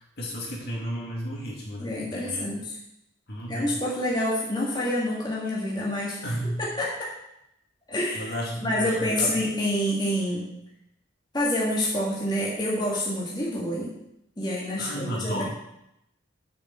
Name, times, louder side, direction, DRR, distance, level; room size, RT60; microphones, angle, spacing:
voice 1, 0.2-2.4 3.3-3.7 6.2-6.6 8.1-9.4 14.8-15.4, equal, 55° left, -2 dB, 2.6 m, -33 dB
voice 2, 1.8-2.8 3.5-6.2 6.6-7.1 7.9-8.3 8.6-10.5 11.3-13.9 14.4-15.4, left 1 dB, 20° left, -5 dB, 1.9 m, -27 dB
6.9 x 6.7 x 7.5 m, 0.82 s
head